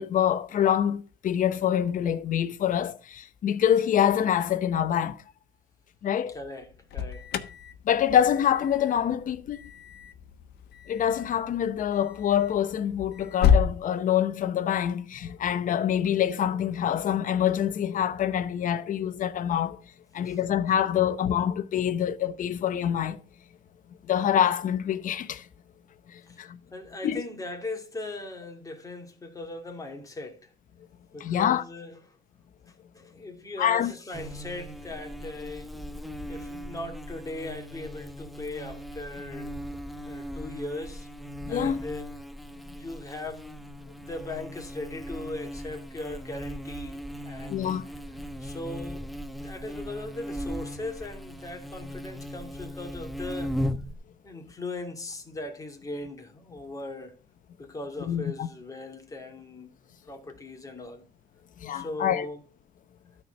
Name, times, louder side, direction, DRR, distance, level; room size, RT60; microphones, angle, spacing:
voice 1, 0.0-5.2 6.0-6.4 7.9-9.6 10.9-19.8 20.1-23.2 24.1-25.4 26.1-26.6 27.0-27.2 31.2-31.6 33.6-33.9 41.4-41.8 47.5-47.8 58.1-58.5 61.6-62.3, left 9 dB, 50° left, 1.0 m, -26 dB
voice 2, 6.3-7.4 20.3-20.4 26.3-26.4 26.7-30.5 31.1-32.2 32.7-35.7 36.3-39.5 40.0-41.1 41.5-42.1 42.6-47.7 48.4-53.6 54.2-57.1 57.6-61.1 61.7-62.4, left 2 dB, 20° left, 2.5 m, -39 dB
Alarm, 6.6-13.7, left 7 dB, 75° left, 1.2 m, -30 dB
Buzz, 34.1-53.9, equal, ahead, 0.9 m, -38 dB
13.0 x 4.5 x 6.5 m
cardioid pair, 110°, 17 cm